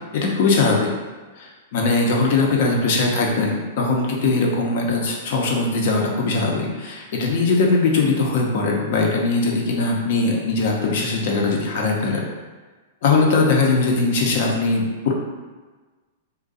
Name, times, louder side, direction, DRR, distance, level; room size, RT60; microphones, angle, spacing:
voice 1, 0.1-0.9 1.4-12.3 13.0-15.1, left 3 dB, 60° left, -1 dB, 0.7 m, -20 dB
2.5 x 2.2 x 4.0 m, 1.3 s
hypercardioid pair, 110°, 0 cm